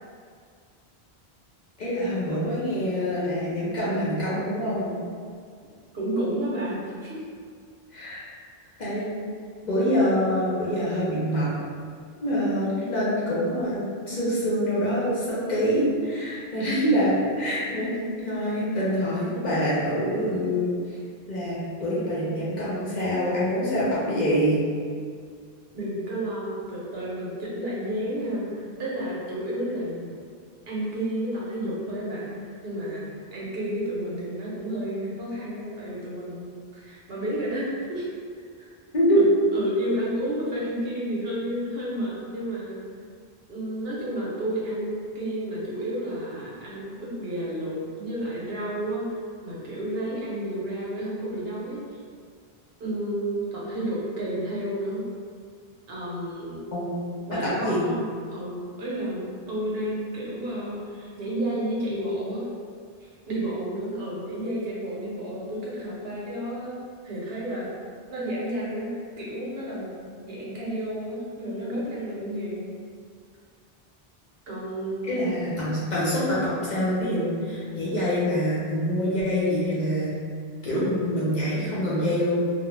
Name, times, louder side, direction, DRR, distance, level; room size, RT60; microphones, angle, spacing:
voice 1, 1.8-4.9 7.9-8.2 8.8-9.0 9.6-11.5 12.2-20.7 21.3-24.6 38.9-39.2 56.7-56.9 57.4-57.9 75.1-80.1 80.6-82.3, equal, 50° left, -8 dB, 0.7 m, -25 dB
voice 2, 5.9-7.2 25.7-30.2 30.7-38.1 38.6-38.7 39.1-42.8 43.5-49.0 49.4-52.0 52.8-55.0 55.9-56.6 57.3-58.0 58.3-62.5 63.0-67.7 68.1-68.9 69.2-69.9 70.2-72.6 74.5-75.4 80.7-81.0, right 1 dB, 75° right, -6 dB, 0.9 m, -31 dB
2.3 x 2.1 x 3.1 m, 2.1 s
omnidirectional pair, 1.0 m